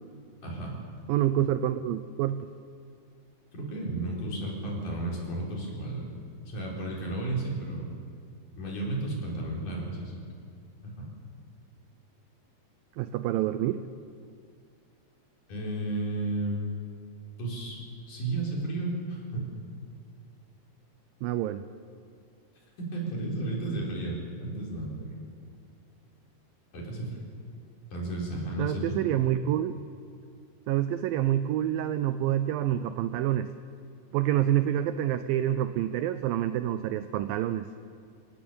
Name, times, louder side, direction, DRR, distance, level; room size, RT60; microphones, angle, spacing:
voice 1, 0.4-0.8 3.6-6.1 6.5-7.9 8.6-10.2 10.8-11.1 15.5-16.6 17.4-17.8 18.1-19.5 22.9-25.2 26.7-27.2 27.9-29.0, right 2 dB, 50° left, -3 dB, 5.8 m, -33 dB
voice 2, 1.1-2.5 13.0-13.8 21.2-21.6 28.6-29.8 30.7-33.5 34.1-37.7, right 12 dB, 85° right, 11 dB, 2.0 m, -27 dB
27.0 x 17.5 x 7.1 m, 2.2 s
omnidirectional pair, 4.9 m